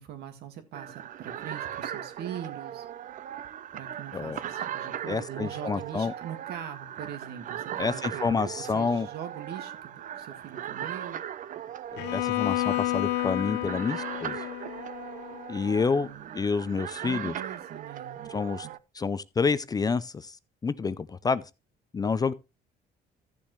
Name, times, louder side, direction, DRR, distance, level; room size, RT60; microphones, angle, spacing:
voice 1, 0.0-2.9 3.7-11.2 16.0-16.3 17.0-18.3 18.6-18.7, right 9 dB, 70° right, 1.9 m, -42 dB
sound 1, 0.7-18.8, right 10 dB, 50° right, 0.6 m, -38 dB
voice 2, 5.0-6.1 7.8-9.1 11.9-14.4 15.5-16.1 16.3-17.3 18.3-18.7 19.0-20.4 20.6-21.4 21.9-22.3, left 5 dB, 20° left, 0.5 m, -28 dB
Bowed string instrument, 12.0-16.0, left 16 dB, 90° left, 0.7 m, -31 dB
13.5 x 7.2 x 3.1 m
cardioid pair, 110°, 17 cm